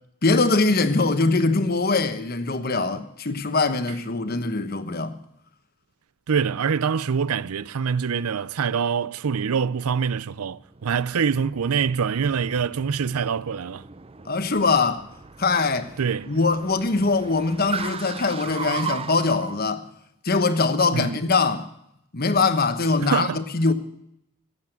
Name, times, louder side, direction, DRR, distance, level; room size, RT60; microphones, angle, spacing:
voice 1, 0.2-5.2 14.2-15.0 15.4-16.0 16.3-19.9 20.2-21.7 22.1-23.7, left 3 dB, 45° left, 1.2 m, -22 dB
voice 2, 6.3-13.8 16.0-16.3 20.9-21.2 23.0-23.4, right 6 dB, 90° right, 0.5 m, -25 dB
Car, 10.7-19.6, right 6 dB, 25° right, 0.5 m, -37 dB
16.0 x 8.5 x 9.3 m
head